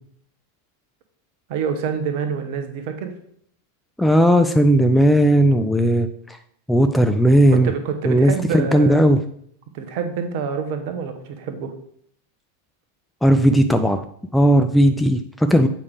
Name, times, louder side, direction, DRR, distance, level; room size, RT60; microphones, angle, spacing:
voice 1, 1.5-3.2 7.5-9.1 9.7-11.7, right 6 dB, 50° right, 7 dB, 1.0 m, -27 dB
voice 2, 4.0-6.4 6.7-7.7 8.1-9.2 13.2-14.0 14.3-15.7, equal, 5° left, 7 dB, 0.4 m, -16 dB
8.1 x 5.1 x 3.4 m, 0.66 s
figure-of-eight pair, 90°, 0 cm